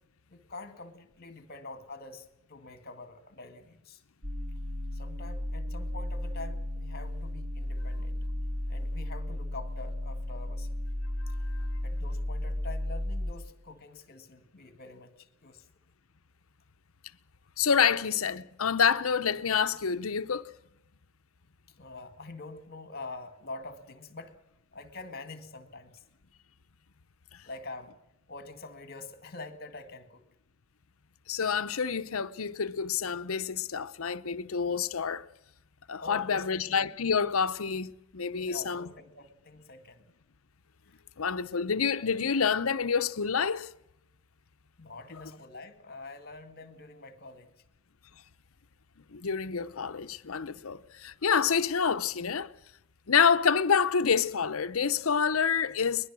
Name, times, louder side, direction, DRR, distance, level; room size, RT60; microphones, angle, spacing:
voice 1, 0.3-4.0 4.9-8.2 8.7-10.7 11.8-15.6 21.8-24.4 24.7-26.0 27.5-28.0 28.3-30.2 36.0-36.6 38.5-40.0 40.9-41.0 44.8-47.5 50.7-50.8, left 3 dB, 50° left, 2.1 m, -45 dB
sound 1, 4.2-13.3, left 1 dB, 40° right, 2.1 m, -34 dB
voice 2, 11.3-11.7 17.6-20.5 27.3-27.4 31.3-35.3 35.9-38.9 41.2-43.7 49.1-52.5 53.1-56.1, left 6 dB, 75° left, 0.8 m, -28 dB
22.0 x 21.0 x 6.2 m
head